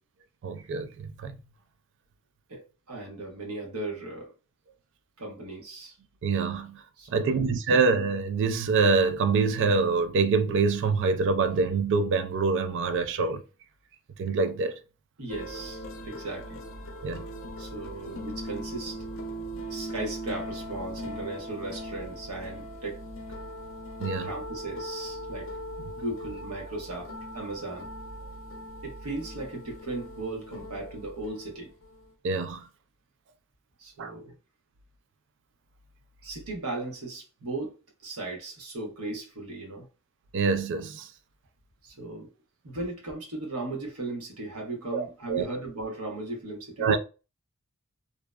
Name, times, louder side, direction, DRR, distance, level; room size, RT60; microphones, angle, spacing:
voice 1, 0.4-1.4 6.2-6.8 7.1-13.4 14.2-14.8 17.0-17.3 24.0-24.3 32.2-32.7 34.0-34.1 40.3-41.1 44.9-45.5 46.8-47.0, right 4 dB, 55° right, 0.3 m, -25 dB
voice 2, 2.5-4.3 5.2-6.0 7.0-7.4 15.2-16.6 17.6-19.0 19.7-23.0 24.2-25.5 25.9-27.9 28.8-31.7 33.8-34.4 36.2-37.8 38.0-39.9 41.8-42.3 42.6-46.9, right 2 dB, 80° right, 0.9 m, -37 dB
sound 1, 15.3-32.1, equal, 65° left, 0.6 m, -40 dB
2.7 x 2.1 x 2.3 m
head